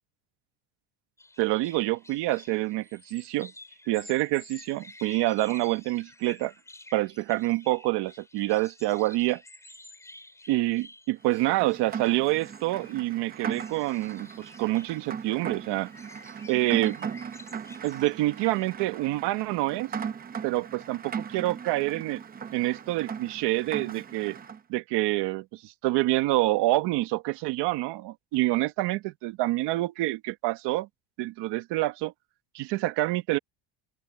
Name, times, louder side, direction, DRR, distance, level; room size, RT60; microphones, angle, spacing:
sound 1, 1.2-18.7, left 2 dB, 5° left, 5.7 m, -51 dB
voice 1, 1.4-3.5 3.9-6.5 6.9-9.4 10.5-15.9 16.5-17.1 17.8-19.9 20.4-22.2 22.5-24.4 24.7-30.9 31.2-32.1 32.5-33.4, right 18 dB, 75° right, 1.4 m, -27 dB
Rain, 11.3-24.6, right 7 dB, 20° right, 0.7 m, -38 dB
open air
cardioid pair, 175°, 41 cm